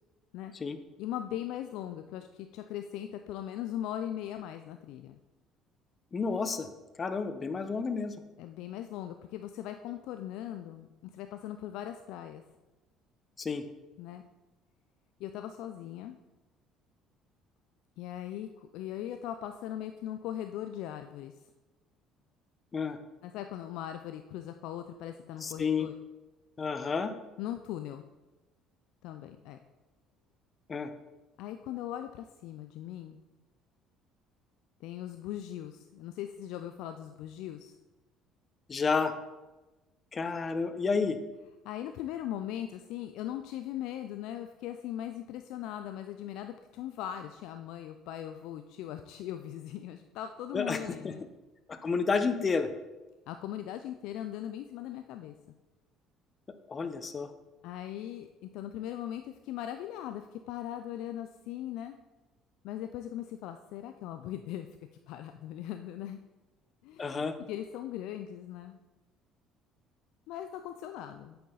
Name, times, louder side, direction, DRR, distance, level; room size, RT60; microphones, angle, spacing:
voice 1, 1.0-5.2 8.4-12.4 14.0-14.2 15.2-16.2 18.0-21.3 23.2-25.9 27.4-28.0 29.0-29.6 31.4-33.2 34.8-37.8 41.6-51.2 53.3-55.3 57.6-62.0 62.6-64.7 65.1-66.2 66.8-68.8 70.3-71.4, left 11 dB, 75° left, 7 dB, 0.4 m, -39 dB
voice 2, 6.1-6.7 7.0-8.2 13.4-13.6 22.7-23.0 25.4-25.9 26.6-27.1 30.7-30.9 38.7-39.2 40.1-41.2 50.5-51.1 51.7-52.7 56.7-57.3 67.0-67.4, left 5 dB, 35° left, 10 dB, 0.9 m, -30 dB
8.4 x 6.9 x 4.0 m, 1.1 s
supercardioid pair, 70°, 0 cm